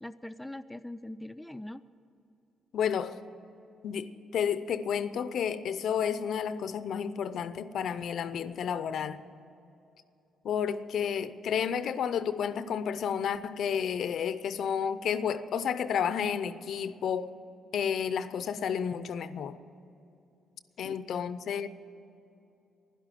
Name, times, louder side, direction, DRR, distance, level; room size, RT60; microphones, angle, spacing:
voice 1, 0.0-1.8 20.8-21.0, left 1 dB, 5° left, 0.5 m, -42 dB
voice 2, 2.7-3.2 3.8-9.2 10.4-17.3 17.7-19.6 20.8-21.7, left 7 dB, 65° left, 0.6 m, -31 dB
11.5 x 11.5 x 9.1 m
cardioid pair, 90°, 0 cm